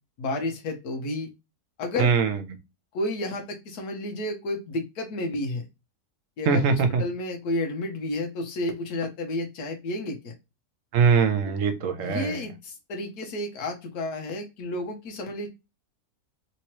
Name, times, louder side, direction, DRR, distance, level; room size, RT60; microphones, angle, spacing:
voice 1, 0.2-1.3 1.8-2.1 2.9-5.7 6.4-10.3 12.0-15.5, left 2 dB, 85° left, 2 dB, 1.4 m, -31 dB
voice 2, 2.0-2.4 6.5-7.0 10.9-12.4, right 5 dB, 65° right, 7 dB, 1.1 m, -22 dB
3.3 x 3.0 x 2.9 m, 0.25 s
omnidirectional pair, 1.6 m